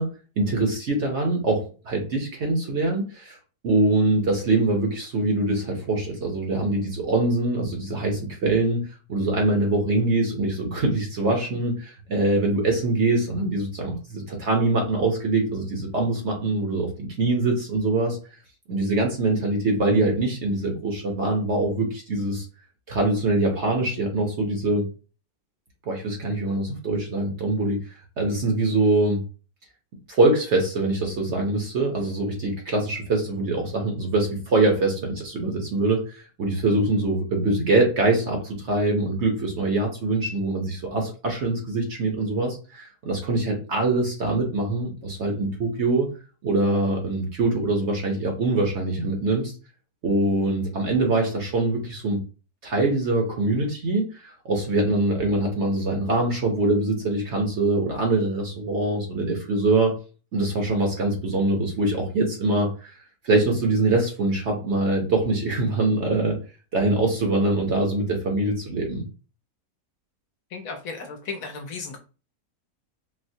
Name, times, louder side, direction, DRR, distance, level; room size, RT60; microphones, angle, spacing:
voice 1, 0.0-3.4 3.6-18.2 18.7-22.5 22.9-24.9 25.9-27.8 28.2-29.2 30.1-46.1 46.4-49.5 50.0-52.2 52.6-60.0 60.3-62.9 63.2-66.4 66.7-69.0, right 2 dB, 55° right, 1 dB, 0.9 m, -23 dB
voice 2, 70.5-72.0, left 4 dB, 65° left, 3 dB, 1.0 m, -35 dB
4.2 x 2.1 x 2.6 m, 0.34 s
omnidirectional pair, 1.7 m